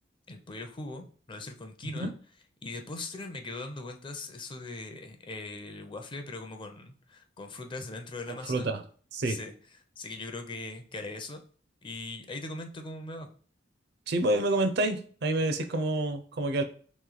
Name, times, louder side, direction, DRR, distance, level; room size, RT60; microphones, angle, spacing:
voice 1, 0.3-2.1 2.6-8.8 9.2-9.5 10.0-11.4 11.8-13.3, left 2 dB, 25° left, 5 dB, 0.5 m, -40 dB
voice 2, 8.3-8.8 9.1-9.4 14.1-16.6, right 2 dB, 60° right, 8 dB, 0.5 m, -28 dB
3.1 x 3.0 x 3.8 m, 0.42 s
head